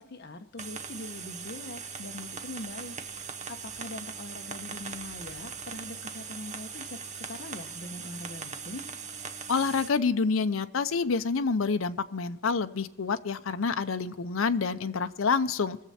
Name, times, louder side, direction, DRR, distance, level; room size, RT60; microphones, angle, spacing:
voice 1, 0.0-8.8, left 2 dB, 50° left, 6 dB, 1.1 m, -42 dB
sound 1, 0.6-9.9, right 6 dB, 35° right, 0.8 m, -40 dB
voice 2, 9.5-15.8, left 5 dB, 80° left, 11 dB, 0.6 m, -27 dB
20.5 x 7.4 x 4.3 m, 0.97 s
head